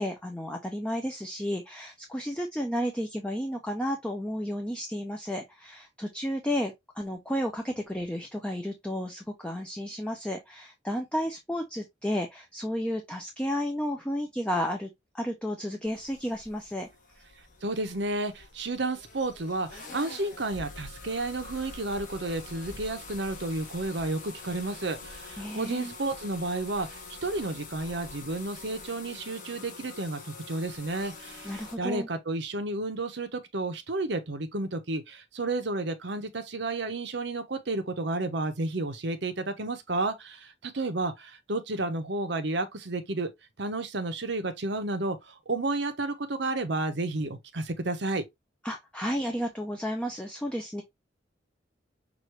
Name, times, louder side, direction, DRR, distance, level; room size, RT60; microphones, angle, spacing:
voice 1, 0.0-14.9 15.1-16.9 25.4-25.9 31.4-32.1 48.6-50.8, equal, 5° left, 0.6 m, -32 dB
sound 1, 15.8-31.8, left 3 dB, 45° left, 1.4 m, -45 dB
voice 2, 17.6-43.3 43.6-48.2, right 2 dB, 65° right, 0.9 m, -32 dB
6.2 x 2.6 x 3.2 m
head